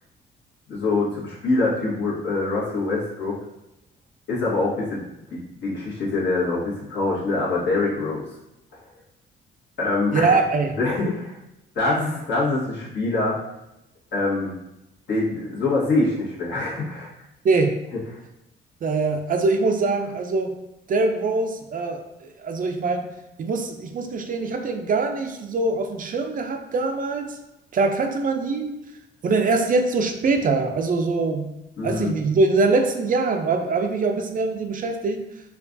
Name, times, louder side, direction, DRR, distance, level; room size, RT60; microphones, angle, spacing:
voice 1, 0.7-3.4 4.3-5.0 5.3-8.2 9.8-10.4 10.8-11.4 11.7-13.4 14.1-14.5 15.1-17.1 31.8-32.1, left 2 dB, 65° left, -6 dB, 1.4 m, -24 dB
voice 2, 10.1-10.8 17.4-17.8 18.8-20.6 20.9-27.4 27.7-28.8 29.2-31.5 31.8-35.2, right 3 dB, 45° right, 5 dB, 0.4 m, -23 dB
4.5 x 2.4 x 2.6 m, 0.90 s
cardioid pair, 90°, 20 cm